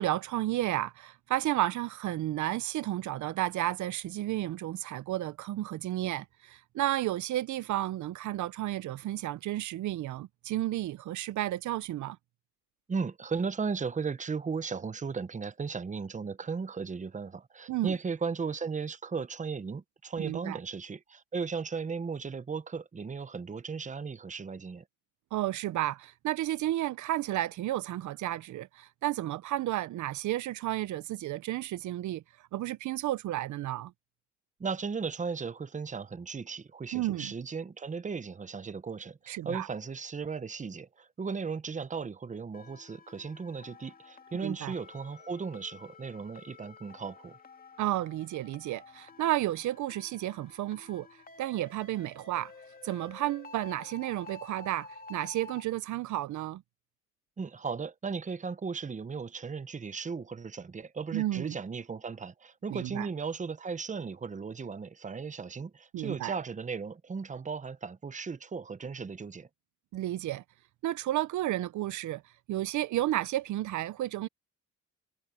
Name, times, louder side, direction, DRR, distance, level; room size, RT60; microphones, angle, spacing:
voice 1, 0.0-12.2 17.7-18.0 20.2-20.6 25.3-32.2 32.5-33.9 36.9-37.3 39.3-39.7 44.4-44.7 47.8-51.1 51.4-52.5 52.8-56.6 61.1-61.6 62.7-63.1 65.9-66.3 69.9-70.4 70.8-72.2 72.5-74.3, right 14 dB, 75° right, 0.7 m, -32 dB
voice 2, 12.9-24.8 34.6-47.4 57.4-69.5, right 5 dB, 25° right, 1.0 m, -36 dB
sound 1, 42.5-55.6, left 3 dB, 30° left, 2.7 m, -51 dB
cardioid pair, 90°, 30 cm